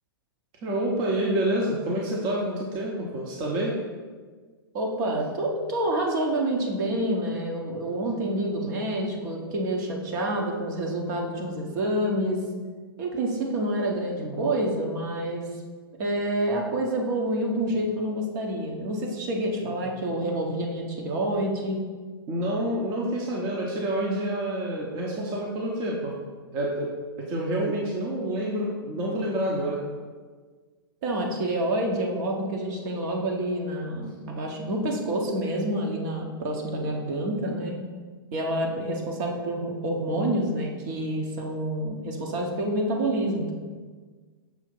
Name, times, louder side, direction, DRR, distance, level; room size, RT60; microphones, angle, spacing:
voice 1, 0.6-3.7 14.2-14.5 19.6-19.7 22.3-26.1 26.5-26.9 27.2-29.8, right 1 dB, 35° right, -2 dB, 0.9 m, -28 dB
voice 2, 4.7-12.4 13.0-15.5 16.0-21.8 31.0-37.8 38.3-43.5, right 1 dB, 55° right, 0 dB, 1.2 m, -28 dB
6.2 x 2.8 x 5.4 m, 1.5 s
hypercardioid pair, 115°, 12 cm